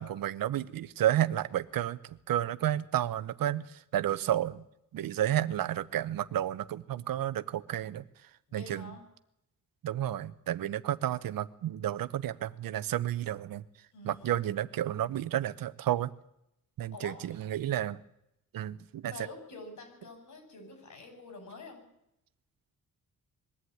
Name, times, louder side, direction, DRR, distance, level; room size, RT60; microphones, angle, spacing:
voice 1, 0.0-4.6 4.9-8.0 8.5-8.9 9.8-13.6 14.0-16.1 16.8-18.0 18.5-19.1, right 12 dB, 90° right, 15 dB, 0.9 m, -31 dB
voice 2, 8.5-9.0 13.9-14.5 14.8-15.2 16.9-17.4 19.0-21.8, left 3 dB, 60° left, 5 dB, 7.0 m, -47 dB
21.5 x 14.5 x 9.4 m, 0.82 s
wide cardioid pair, 140°, 33 cm